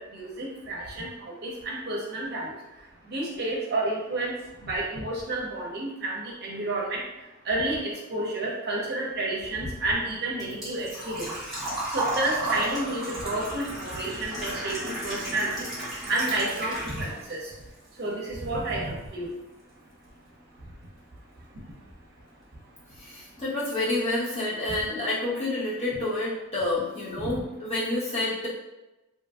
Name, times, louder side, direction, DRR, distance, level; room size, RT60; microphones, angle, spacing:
voice 1, 0.0-2.6 3.1-4.3 4.6-7.0 7.4-11.3 11.9-15.7 16.1-17.5 18.0-19.3 27.2-27.4, right 2 dB, 45° right, -3 dB, 0.6 m, -30 dB
Engine / Trickle dribble / Fill (with liquid), 9.4-17.4 17.7-18.7 19.0-19.1 21.0-21.1 21.3-21.6 22.0-22.1 22.3-22.4, right 1 dB, ahead, 1.3 m, -33 dB
voice 2, 22.9-28.5, left 2 dB, 30° left, -8 dB, 0.9 m, -29 dB
2.8 x 2.6 x 2.3 m, 1.0 s
head